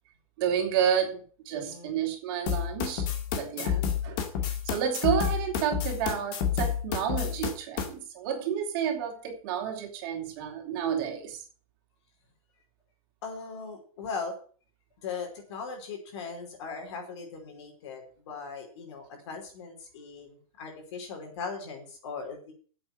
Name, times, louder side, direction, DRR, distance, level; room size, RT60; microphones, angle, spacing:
voice 1, 0.4-3.1 3.3-3.8 4.0-11.4, right 8 dB, 40° right, 3 dB, 3.5 m, -30 dB
voice 2, 1.5-2.0 3.5-3.9 13.2-14.4 15.0-22.5, left 5 dB, 50° left, 3 dB, 5.0 m, -39 dB
sound 1, 2.5-7.9, left 8 dB, 35° left, 2.1 m, -29 dB
9.4 x 8.1 x 9.0 m, 0.42 s
hypercardioid pair, 160°, 18 cm